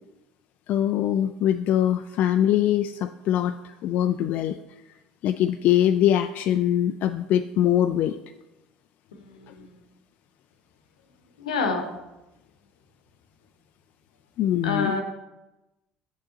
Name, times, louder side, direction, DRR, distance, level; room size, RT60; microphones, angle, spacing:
voice 1, 0.7-4.6 5.2-8.2 9.5-9.6 14.4-15.0, left 11 dB, 55° left, 8 dB, 0.3 m, -23 dB
voice 2, 9.1-9.5 11.4-11.9 14.6-15.0, left 4 dB, 85° left, 5 dB, 0.9 m, -27 dB
8.9 x 6.6 x 2.8 m, 0.99 s
hypercardioid pair, 65°, 3 cm